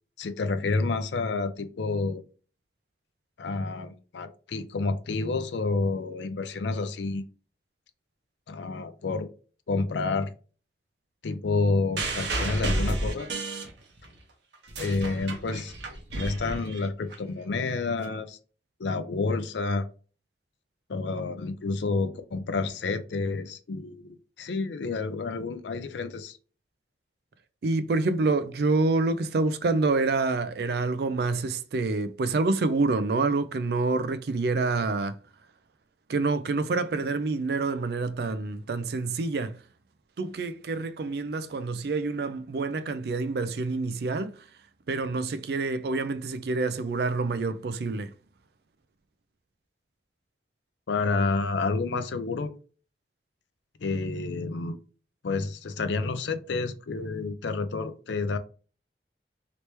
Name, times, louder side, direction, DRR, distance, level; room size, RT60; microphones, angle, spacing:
voice 1, 0.2-2.2 3.4-7.2 8.5-9.3 9.7-10.3 11.2-13.3 14.8-15.7 16.2-18.4 18.8-19.9 20.9-24.1 24.4-26.4 50.9-52.5 53.8-54.8 55.2-58.4, left 3 dB, 80° left, 0.5 m, -29 dB
sound 1, 12.0-14.2 14.5-17.1 18.0-18.1, right 2 dB, 75° right, 0.9 m, -31 dB
voice 2, 27.6-35.2 36.1-39.6 40.2-44.5 44.9-48.1, right 3 dB, 60° right, 0.4 m, -27 dB
3.2 x 3.0 x 3.0 m
head